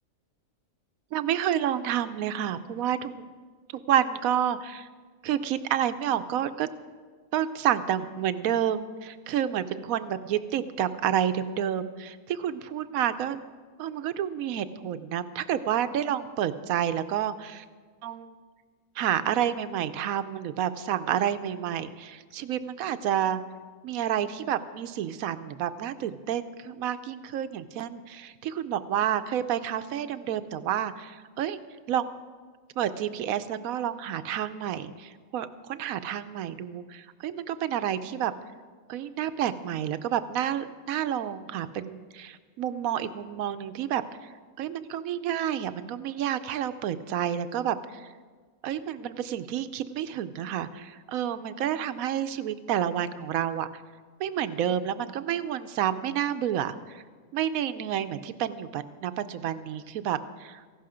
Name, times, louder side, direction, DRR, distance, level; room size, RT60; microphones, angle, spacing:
voice 1, 1.1-3.2 3.7-4.9 5.2-6.7 7.3-13.4 13.8-17.6 18.0-18.3 19.0-23.4 23.8-31.6 31.9-32.1 32.8-38.3 38.9-44.0 44.6-48.1 48.6-53.7 54.2-57.0 57.3-60.6, right 10 dB, 85° right, 12 dB, 1.1 m, -29 dB
15.0 x 11.5 x 5.0 m, 1.5 s
omnidirectional pair, 1.4 m